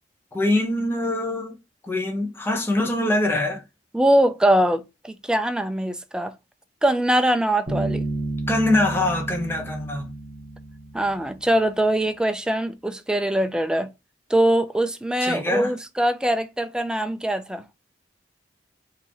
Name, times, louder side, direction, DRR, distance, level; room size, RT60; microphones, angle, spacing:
voice 1, 0.3-1.6 1.8-3.6 8.5-10.1 15.2-15.7, left 1 dB, 15° left, 0.7 m, -23 dB
voice 2, 3.9-6.3 6.8-8.0 10.9-13.9 14.3-17.6, right 1 dB, 5° right, 0.3 m, -22 dB
Bass guitar, 7.7-11.4, right 2 dB, 35° right, 1.0 m, -31 dB
3.8 x 2.6 x 2.9 m
head